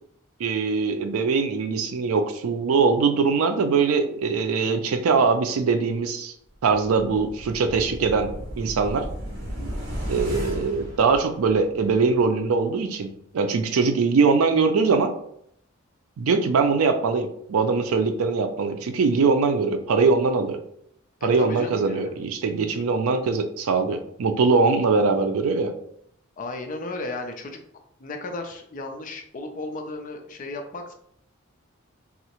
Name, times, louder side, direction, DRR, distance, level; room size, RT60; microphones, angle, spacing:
voice 1, 0.4-6.3 6.6-8.3 8.6-9.1 10.1-15.1 16.2-20.6 21.2-25.7, right 4 dB, 85° right, 8 dB, 0.4 m, -22 dB
sound 1, 6.6-11.8 12.2-12.3, equal, 55° right, 1.0 m, -34 dB
voice 2, 21.2-22.2 26.4-27.6 28.0-30.9, left 2 dB, 40° left, 4 dB, 0.4 m, -34 dB
3.5 x 2.0 x 2.8 m, 0.69 s
head